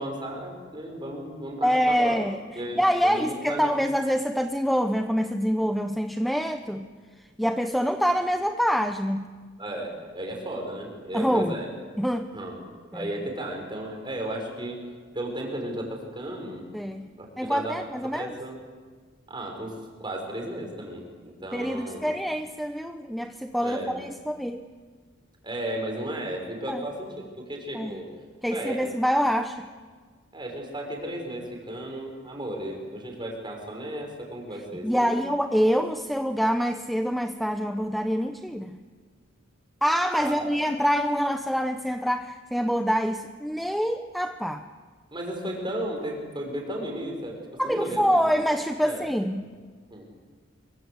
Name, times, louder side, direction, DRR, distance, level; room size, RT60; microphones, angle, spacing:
voice 1, 0.0-2.2 2.6-3.7 9.6-11.7 12.3-12.6 12.9-14.8 15.1-16.7 17.2-17.8 18.0-18.6 19.3-19.7 20.0-22.0 23.6-24.0 25.4-28.1 28.5-28.8 30.3-35.3 40.2-40.6 45.1-48.2 48.8-49.1 49.9-50.1, right 1 dB, 25° right, 1 dB, 5.9 m, -34 dB
voice 2, 1.6-2.4 2.8-6.9 7.4-9.3 11.1-11.5 12.0-12.3 12.9-13.1 16.7-17.1 17.4-18.3 21.5-24.6 26.7-26.8 27.7-27.9 28.4-29.7 34.8-38.8 39.8-44.7 47.6-49.5, equal, ahead, 7 dB, 0.7 m, -25 dB
25.5 x 24.5 x 8.1 m, 1.6 s
head